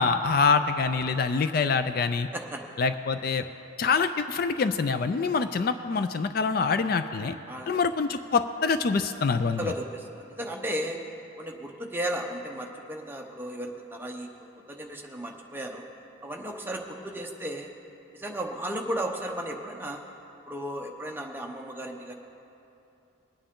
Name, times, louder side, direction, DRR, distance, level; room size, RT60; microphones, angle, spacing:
voice 1, 0.0-2.3 2.8-3.4 3.8-7.3 7.7-9.7, left 4 dB, 45° left, 10 dB, 0.3 m, -25 dB
voice 2, 7.5-7.8 9.6-11.0 11.4-14.3 14.7-15.8 16.2-17.7 18.1-20.0 20.5-22.1, right 1 dB, 10° right, 1 dB, 0.8 m, -34 dB
20.5 x 9.0 x 3.7 m, 2.8 s
head